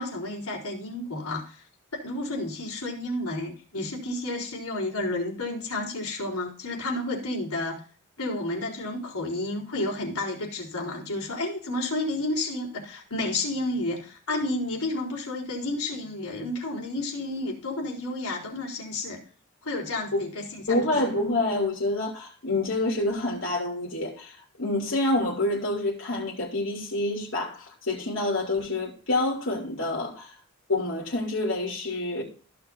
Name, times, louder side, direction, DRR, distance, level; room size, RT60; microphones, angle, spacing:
voice 1, 0.0-1.6 1.9-7.8 8.2-19.2 19.6-20.8, left 2 dB, 85° left, 4.1 m, -31 dB
voice 2, 20.7-30.3 30.7-32.2, left 2 dB, 60° left, 3.1 m, -27 dB
15.5 x 6.8 x 2.7 m
head